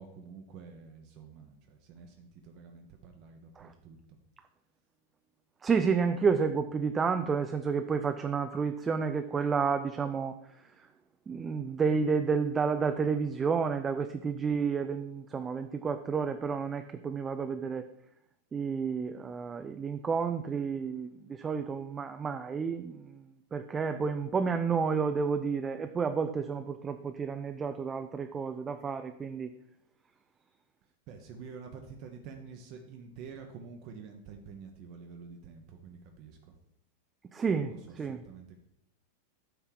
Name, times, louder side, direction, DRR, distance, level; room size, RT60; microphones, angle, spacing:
voice 1, 0.0-4.0 31.1-36.4 37.9-38.0 38.2-38.6, right 5 dB, 40° right, 4 dB, 0.9 m, -48 dB
voice 2, 5.6-10.4 11.3-17.9 18.5-23.2 23.5-29.5 37.3-38.2, right 5 dB, 20° right, 7 dB, 0.5 m, -30 dB
9.1 x 3.4 x 6.4 m, 0.77 s
figure-of-eight pair, 90°, 0 cm